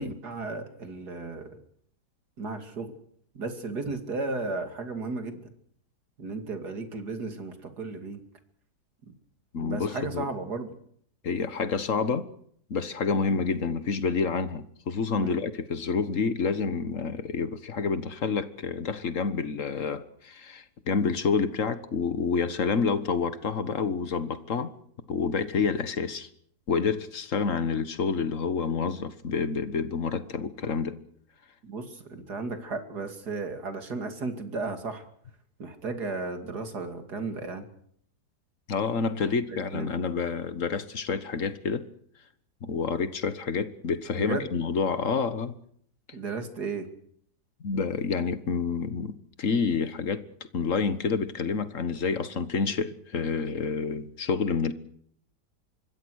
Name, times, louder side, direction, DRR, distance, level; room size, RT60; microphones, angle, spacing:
voice 1, 0.0-1.6 2.4-2.9 3.3-5.5 6.2-8.2 9.6-10.8 13.3-13.4 15.2-15.4 31.6-35.0 35.6-37.7 39.5-39.9 44.2-44.5 46.1-46.9, right 3 dB, 65° right, 3.2 m, -34 dB
voice 2, 9.5-10.3 11.2-12.3 12.7-24.7 25.1-26.3 26.7-31.0 38.7-41.8 42.6-45.5 47.6-50.2 50.5-54.7, left 5 dB, 50° left, 1.7 m, -28 dB
25.5 x 22.0 x 6.5 m
omnidirectional pair, 1.8 m